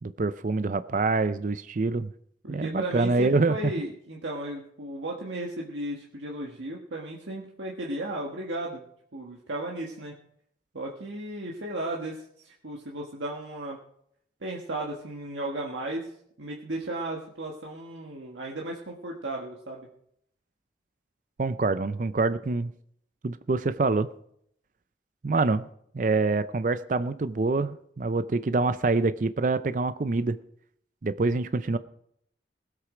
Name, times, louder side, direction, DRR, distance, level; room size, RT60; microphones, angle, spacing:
voice 1, 0.0-2.1 2.5-3.6 21.4-22.7 23.2-24.1 25.2-25.7 25.9-30.4 31.0-31.8, right 3 dB, 45° right, 13 dB, 0.4 m, -26 dB
voice 2, 2.4-8.8 9.1-10.2 10.7-13.8 14.4-19.9, right 1 dB, 85° right, -1 dB, 1.6 m, -35 dB
19.0 x 8.2 x 5.0 m, 0.70 s
head